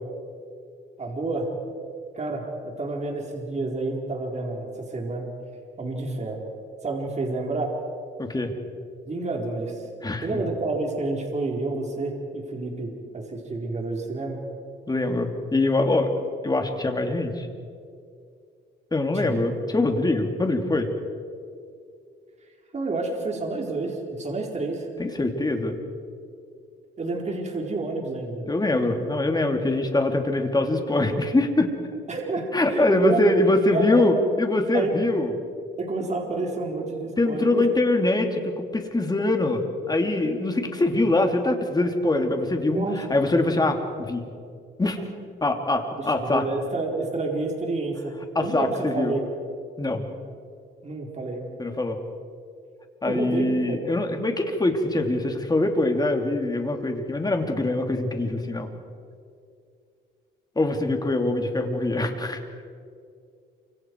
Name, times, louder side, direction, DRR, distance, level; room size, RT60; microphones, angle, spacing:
voice 1, 1.0-1.5 2.1-5.3 5.8-6.4 6.8-7.7 9.1-9.8 10.2-14.4 19.1-19.4 22.7-24.9 27.0-28.4 32.1-33.3 33.7-34.1 34.7-35.0 35.8-37.7 42.7-43.0 46.0-49.2 50.8-51.4 53.1-53.8 55.8-55.9, right 3 dB, 35° right, 0 dB, 4.4 m, -29 dB
voice 2, 8.2-8.5 10.0-10.4 14.9-16.1 16.4-17.5 18.9-20.9 25.0-25.8 28.5-31.8 32.5-35.3 37.2-44.2 44.8-45.0 45.4-46.5 48.3-49.1 49.8-50.0 51.6-52.0 53.0-58.7 60.5-62.4, left 2 dB, 20° left, 4 dB, 3.0 m, -23 dB
29.0 x 26.0 x 4.8 m, 2.3 s
cardioid pair, 90°, 20 cm